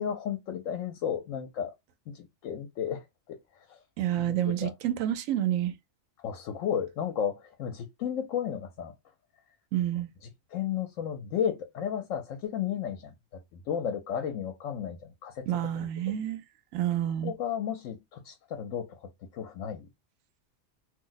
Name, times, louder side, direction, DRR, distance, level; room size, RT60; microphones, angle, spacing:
voice 1, 0.0-1.7 2.1-3.0 3.3-3.4 3.7-3.8 4.2-4.4 4.6-4.7 6.2-8.9 10.5-13.1 13.5-15.5 17.2-19.9, left 8 dB, 80° left, 0.9 m, -33 dB
voice 2, 4.0-5.7 9.7-10.1 15.5-16.4 16.7-17.3, right 12 dB, 85° right, 1.0 m, -28 dB
2.6 x 2.0 x 3.8 m
omnidirectional pair, 1.3 m